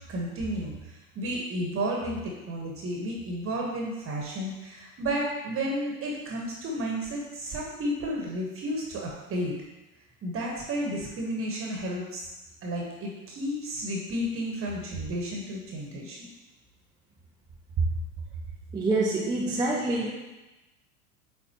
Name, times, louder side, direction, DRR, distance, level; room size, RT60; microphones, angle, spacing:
voice 1, 0.1-9.5 10.2-12.3 12.6-16.3, equal, 30° right, -2 dB, 1.3 m, -32 dB
voice 2, 18.7-20.1, right 2 dB, 10° right, -3 dB, 0.7 m, -26 dB
8.1 x 4.1 x 2.9 m, 1.1 s
hypercardioid pair, 85°, 42 cm